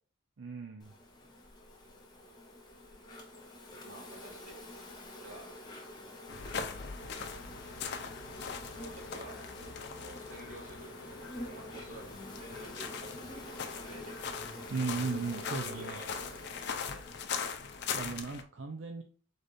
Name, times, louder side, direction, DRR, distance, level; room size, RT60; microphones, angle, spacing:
voice 1, 0.4-0.9 14.7-16.0 17.9-19.0, right 4 dB, 65° right, 4 dB, 0.5 m, -36 dB
Insect, 0.8-18.2, left 1 dB, 20° left, 1.0 m, -47 dB
voice 2, 3.8-4.6 5.1-5.5 8.7-14.1 15.6-17.0, right 1 dB, 90° right, -3 dB, 2.4 m, -50 dB
sound 1, 6.3-18.4, left 6 dB, 55° left, 0.5 m, -41 dB
5.1 x 4.0 x 2.5 m, 0.41 s
head